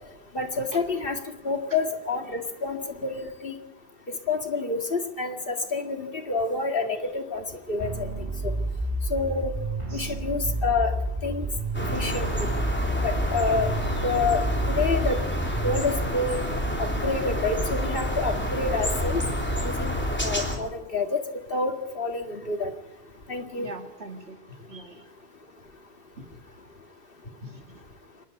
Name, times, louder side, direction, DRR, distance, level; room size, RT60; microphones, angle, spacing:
voice 1, 0.3-1.2 1.4-3.5 4.1-8.5 9.1-9.5 9.9-10.9 11.2-11.5 11.9-12.5 13.0-13.7 14.0-15.2 15.6-16.5 16.8-19.2 19.6-19.9 20.2-22.7 23.3-23.7, left 3 dB, 60° left, 4 dB, 2.4 m, -28 dB
sound 1, 7.8-15.8, right 2 dB, 30° right, 5.8 m, -30 dB
sound 2, 11.7-20.6, equal, 10° left, 3.4 m, -28 dB
voice 2, 23.6-25.0 27.4-27.6, right 1 dB, 80° right, 5 dB, 2.7 m, -42 dB
26.5 x 11.0 x 9.4 m, 0.94 s
omnidirectional pair, 1.1 m